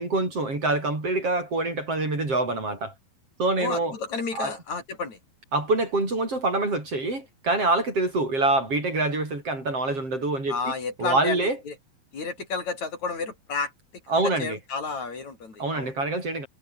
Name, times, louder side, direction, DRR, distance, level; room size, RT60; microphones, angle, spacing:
voice 1, 0.0-2.9 3.4-3.9 4.3-4.5 5.5-10.7 11.0-11.6 14.1-14.6 15.6-16.5, right 2 dB, 35° right, 8.3 m, -25 dB
voice 2, 3.6-5.2 10.5-11.8 12.1-13.7 14.2-15.9, left 4 dB, 45° left, 6.1 m, -31 dB
omnidirectional pair, 4.5 m